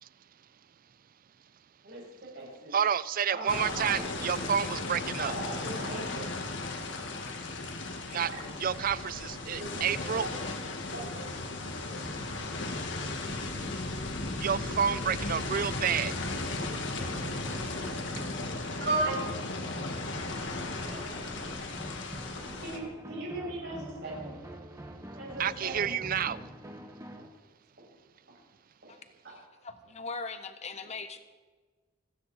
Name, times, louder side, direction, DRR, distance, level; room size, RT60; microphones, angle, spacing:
voice 1, 1.8-2.8 3.3-4.3 5.2-6.3 8.2-8.4 8.7-8.9 9.5-10.4 10.9-11.3 17.0-17.1 18.8-19.2 19.8-20.3 20.7-21.2 22.6-24.3 25.2-26.0 27.2-27.3 27.8-27.9 28.8-29.0 29.2-29.5 30.8-30.9, right 2 dB, 65° right, -4 dB, 6.4 m, -38 dB
voice 2, 2.7-5.3 8.1-8.3 8.6-10.2 14.4-16.2 25.4-26.4, right 8 dB, 50° right, 18 dB, 0.5 m, -29 dB
sound 1, 3.5-22.8, left 2 dB, 70° left, 1.7 m, -36 dB
sound 2, 11.6-27.3, equal, 15° right, 1.4 m, -45 dB
voice 3, 29.6-31.2, left 4 dB, 35° left, 8 dB, 1.1 m, -39 dB
28.0 x 9.4 x 4.2 m, 1.4 s
head